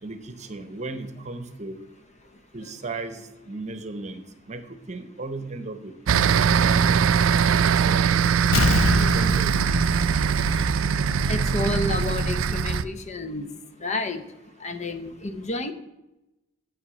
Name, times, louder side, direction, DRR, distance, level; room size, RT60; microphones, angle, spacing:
voice 1, 0.0-1.8 2.5-4.2 4.5-6.8 7.4-8.4 9.0-9.9, right 3 dB, 35° right, 9 dB, 0.9 m, -36 dB
sound 1, 6.1-12.8, right 7 dB, 85° right, 0.4 m, -21 dB
Explosion, 8.5-11.1 11.5-11.6, left 2 dB, 85° left, 0.7 m, -26 dB
voice 2, 10.5-13.5 13.8-14.2 14.6-15.7, left 2 dB, 35° left, 9 dB, 0.7 m, -31 dB
8.0 x 6.5 x 7.6 m, 0.96 s
head